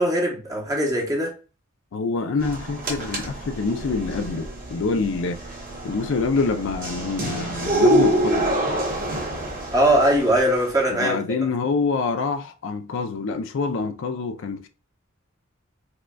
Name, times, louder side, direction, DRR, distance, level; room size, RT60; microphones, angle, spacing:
voice 1, 0.0-1.3 9.7-11.2, right 1 dB, 15° right, 0.9 m, -20 dB
voice 2, 1.9-5.4 5.8-8.5 10.9-14.7, left 4 dB, 65° left, 0.4 m, -26 dB
sound 1, 2.4-10.8, right 1 dB, 45° right, 1.3 m, -26 dB
4.9 x 2.2 x 2.2 m
head